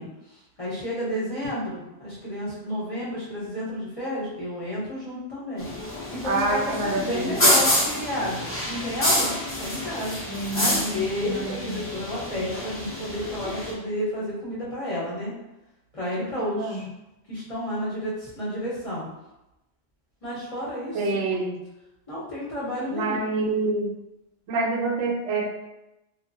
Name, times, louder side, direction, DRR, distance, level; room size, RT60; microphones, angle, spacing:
voice 1, 0.0-5.7 6.1-9.3 9.6-10.2 10.5-15.3 15.9-16.9 17.3-19.1 20.2-21.5 22.1-23.3, left 1 dB, 35° left, -8 dB, 0.8 m, -31 dB
sound 1, 5.6-13.7, left 1 dB, 20° left, 0.4 m, -27 dB
voice 2, 6.2-7.3 10.3-11.8 16.3-16.8 20.9-21.6 22.9-24.0 24.5-25.4, right 2 dB, 85° right, 0 dB, 0.9 m, -27 dB
3.0 x 2.0 x 2.6 m, 0.93 s
omnidirectional pair, 1.2 m